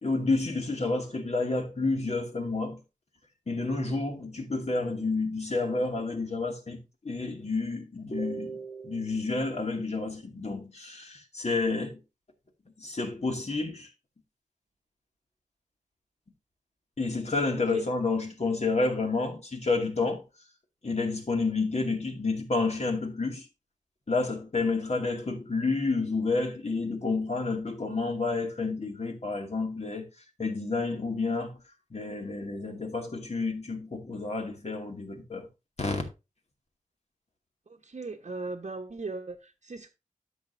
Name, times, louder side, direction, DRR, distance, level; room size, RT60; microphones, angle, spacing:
voice 1, 0.0-2.8 3.5-12.0 12.8-13.9 17.0-20.2 20.8-23.5 24.1-30.1 30.4-31.5 31.9-35.5 35.8-36.0, left 3 dB, 50° left, 2.3 m, -30 dB
voice 2, 37.8-39.9, right 3 dB, 55° right, 1.1 m, -38 dB
12.5 x 6.6 x 2.6 m
wide cardioid pair, 90°, 14 cm